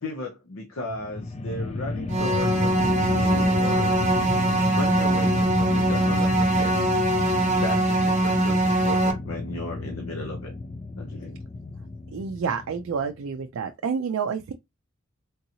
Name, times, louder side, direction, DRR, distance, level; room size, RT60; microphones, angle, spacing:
voice 1, 0.0-4.0 4.7-7.0 7.6-10.5 11.0-11.4, left 2 dB, 90° left, 0.7 m, -35 dB
sound 1, 0.8-13.2, left 2 dB, 30° left, 0.3 m, -31 dB
sound 2, 2.1-9.1, right 1 dB, 35° right, 0.7 m, -22 dB
voice 2, 12.1-14.5, right 6 dB, 80° right, 0.4 m, -29 dB
3.7 x 2.7 x 2.7 m
head